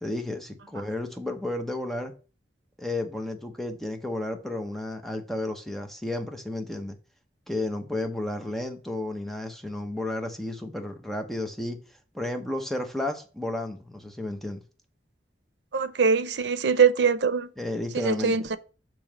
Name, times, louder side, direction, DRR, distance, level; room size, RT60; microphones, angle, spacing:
voice 1, 0.0-2.1 2.8-7.0 7.5-11.8 12.1-14.6 17.6-18.4, left 1 dB, ahead, 0.8 m, -32 dB
voice 2, 15.7-17.5 17.9-18.6, right 5 dB, 85° right, 0.6 m, -23 dB
6.9 x 3.1 x 5.9 m
head